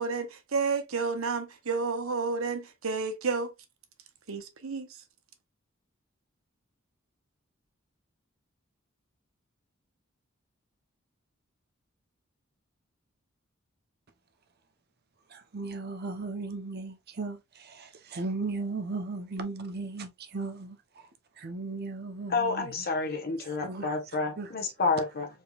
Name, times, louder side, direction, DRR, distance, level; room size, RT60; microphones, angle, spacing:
voice 1, 0.0-3.5 4.3-4.9, right 4 dB, 80° right, 1.0 m, -30 dB
voice 2, 15.3-20.8 21.4-22.8 23.4-23.9 24.4-24.5, right 3 dB, 50° right, 0.9 m, -36 dB
voice 3, 22.3-25.3, left 4 dB, 50° left, 1.4 m, -29 dB
4.5 x 3.7 x 2.4 m
head